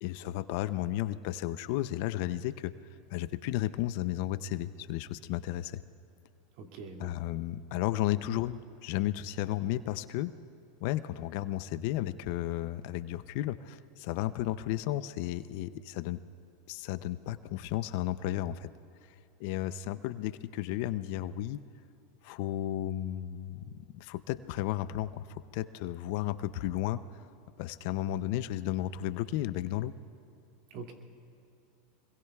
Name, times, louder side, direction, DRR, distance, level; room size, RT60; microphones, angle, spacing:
voice 1, 0.0-2.7 3.1-5.8 7.0-10.3 10.8-16.2 16.7-18.7 19.4-21.6 22.2-27.0 27.6-29.9, left 14 dB, 60° left, 14 dB, 0.5 m, -33 dB
voice 2, 6.6-7.2 30.7-30.9, right 4 dB, 60° right, 2 dB, 2.4 m, -43 dB
25.5 x 21.5 x 2.4 m, 2.7 s
hypercardioid pair, 110°, 0 cm